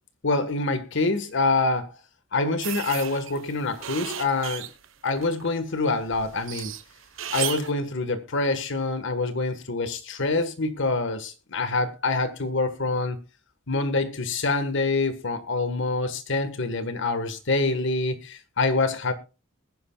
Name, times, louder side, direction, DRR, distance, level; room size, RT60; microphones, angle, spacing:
voice 1, 0.2-1.9 2.3-4.7 5.0-6.7 7.3-13.2 13.7-19.1, left 3 dB, 65° left, 1.6 m, -26 dB
sound 1, 2.6-5.5 5.9-7.7, right 10 dB, 70° right, 1.1 m, -34 dB
21.0 x 10.0 x 2.4 m
head